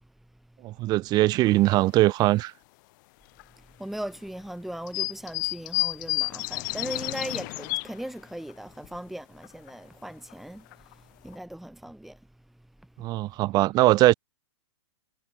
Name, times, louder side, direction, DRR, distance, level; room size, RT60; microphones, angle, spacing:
voice 1, 0.6-2.5 13.0-14.1, right 17 dB, 25° right, 5.2 m, -21 dB
sound 1, 1.4-1.7 2.3-2.4 3.4-3.5 4.9-8.0 8.5-8.6 8.8-9.0 9.4-9.7 10.3-10.4 10.7-10.9 11.3-11.4, left 24 dB, 40° left, 5.7 m, -30 dB
voice 2, 3.8-12.2, right 1 dB, ahead, 4.7 m, -38 dB
hypercardioid pair, 160°, 16 cm